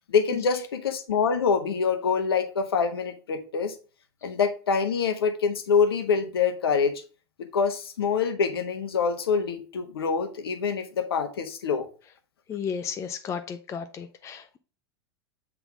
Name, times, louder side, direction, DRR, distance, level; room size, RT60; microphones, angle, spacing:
voice 1, 0.1-3.7 4.2-6.9 7.4-11.9, left 5 dB, 70° left, 1.2 m, -25 dB
voice 2, 12.5-14.6, left 7 dB, 20° left, 0.6 m, -34 dB
8.0 x 3.8 x 4.9 m
figure-of-eight pair, 90°, 13 cm